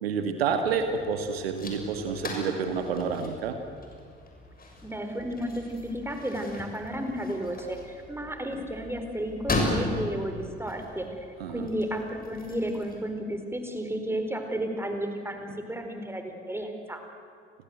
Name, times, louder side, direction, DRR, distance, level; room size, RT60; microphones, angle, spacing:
voice 1, 0.0-3.6 11.4-11.7, right 6 dB, 75° right, 7 dB, 1.7 m, -29 dB
sound 1, 0.6-13.0, left 2 dB, 30° left, 6.9 m, -37 dB
voice 2, 4.8-11.1 11.5-17.0, equal, 10° right, 5 dB, 4.6 m, -33 dB
29.5 x 23.0 x 8.0 m, 2.3 s
figure-of-eight pair, 50°, 30 cm